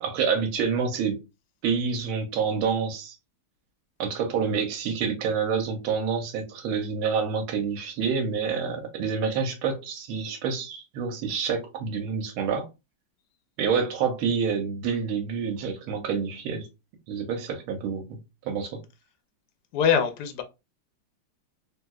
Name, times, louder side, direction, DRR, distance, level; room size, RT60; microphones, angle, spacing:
voice 1, 0.0-1.2 1.6-3.2 4.0-12.7 13.6-16.7 17.1-18.2 18.4-18.8, right 6 dB, 85° right, 1.6 m, -27 dB
voice 2, 19.7-20.4, left 7 dB, 75° left, 1.0 m, -23 dB
3.5 x 2.7 x 2.3 m
omnidirectional pair, 2.3 m